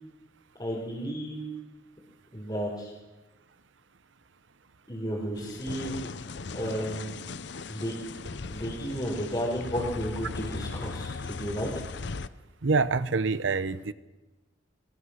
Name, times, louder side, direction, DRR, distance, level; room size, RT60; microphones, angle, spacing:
voice 1, 0.6-1.5 2.3-2.9 4.9-6.0 6.5-7.2 7.7-7.9 8.5-11.7, equal, 20° left, -5 dB, 4.4 m, -33 dB
sound 1, 5.3-12.3, left 4 dB, 65° left, 0.7 m, -38 dB
voice 2, 12.6-13.9, right 4 dB, 75° right, 15 dB, 0.9 m, -26 dB
22.5 x 22.5 x 6.5 m, 1.2 s
head